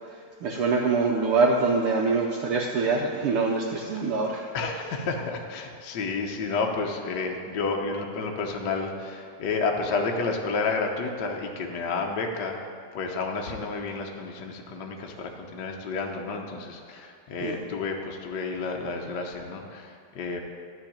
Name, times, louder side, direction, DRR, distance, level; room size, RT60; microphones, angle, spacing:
voice 1, 0.4-4.4 17.4-17.6, right 4 dB, 80° right, -1 dB, 1.2 m, -24 dB
voice 2, 4.5-12.6 12.9-20.4, left 4 dB, 70° left, 1 dB, 1.0 m, -30 dB
13.0 x 4.5 x 8.7 m, 2.2 s
omnidirectional pair, 3.4 m